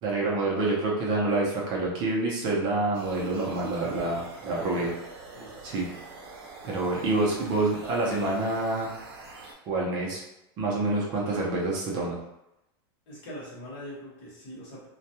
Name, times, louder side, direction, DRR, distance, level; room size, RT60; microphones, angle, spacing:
voice 1, 0.0-4.9 5.6-5.9 6.6-8.9 9.7-10.2 10.6-12.2, right 2 dB, 35° right, -3 dB, 0.6 m, -27 dB
sound 1, 2.9-9.5, right 3 dB, 70° right, 0.7 m, -45 dB
voice 2, 4.5-5.0 5.3-5.7 13.1-14.9, equal, 40° left, -5 dB, 1.1 m, -43 dB
2.3 x 2.2 x 2.8 m, 0.86 s
supercardioid pair, 155°, 13 cm